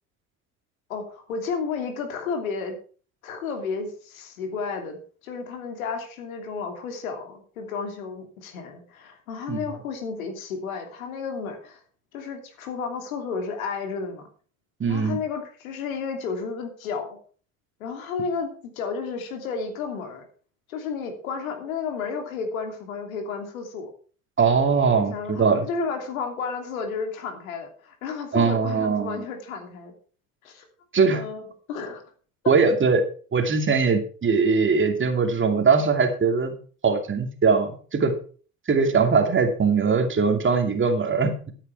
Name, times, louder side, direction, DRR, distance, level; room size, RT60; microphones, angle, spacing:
voice 1, 0.9-2.8 3.2-11.8 12.1-14.2 14.9-17.2 17.8-20.2 20.7-23.9 24.8-29.9 30.4-30.7 31.1-31.4 31.7-32.0 32.4-32.5 35.5-35.7, left 5 dB, 75° left, 5 dB, 2.9 m, -32 dB
voice 2, 14.8-15.2 24.4-25.7 28.3-29.2 30.9-31.2 32.5-33.0 33.3-36.5 36.8-38.1 38.7-41.5, right 5 dB, 30° right, 6 dB, 2.5 m, -21 dB
13.0 x 9.2 x 4.6 m, 0.41 s
hypercardioid pair, 65°, 42 cm